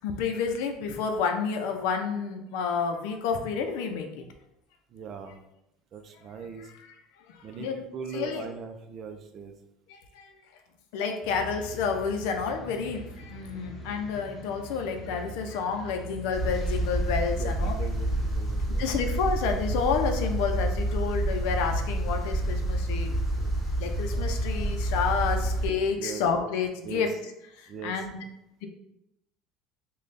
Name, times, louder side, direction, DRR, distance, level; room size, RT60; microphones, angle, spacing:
voice 1, 0.0-4.1 7.6-7.7 8.1-8.5 10.9-13.0 13.3-17.7 18.8-23.1 23.8-27.1 27.8-28.2, left 5 dB, 75° left, 5 dB, 0.5 m, -29 dB
voice 2, 4.9-5.4 5.9-6.6 7.4-9.5 17.4-18.8 23.1-23.5 25.4-25.5 26.0-26.2 26.8-27.1 27.7-27.9, right 6 dB, 40° right, 6 dB, 0.5 m, -40 dB
sound 1, 11.2-18.3, right 1 dB, 30° left, 0.8 m, -43 dB
sound 2, 16.3-25.7, right 1 dB, 10° left, 1.0 m, -28 dB
3.2 x 2.3 x 4.0 m, 0.84 s
supercardioid pair, 130°, 0 cm